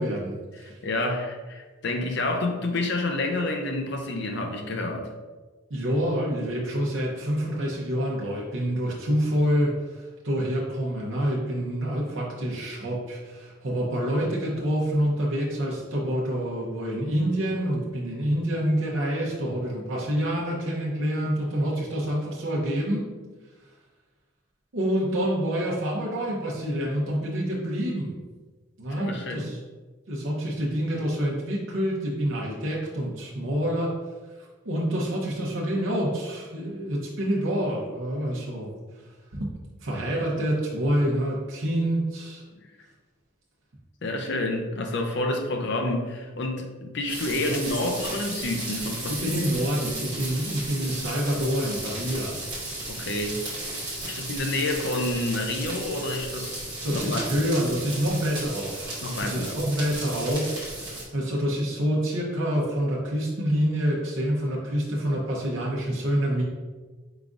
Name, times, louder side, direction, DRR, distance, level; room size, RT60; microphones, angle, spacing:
voice 1, 0.0-0.8 5.7-23.1 24.7-28.2 28.8-29.6 30.1-33.9 34.6-38.7 39.3-39.5 39.8-42.4 47.3-47.6 49.1-52.4 54.0-54.2 56.8-66.4, equal, 65° right, -4 dB, 0.8 m, -27 dB
voice 2, 0.8-5.1 29.0-29.5 44.0-49.4 52.9-53.4 54.0-57.3 59.0-59.6, left 2 dB, 55° left, 3 dB, 0.6 m, -29 dB
sound 1, 47.1-61.0, right 2 dB, 20° right, 1.4 m, -35 dB
4.9 x 3.6 x 2.5 m, 1.3 s
head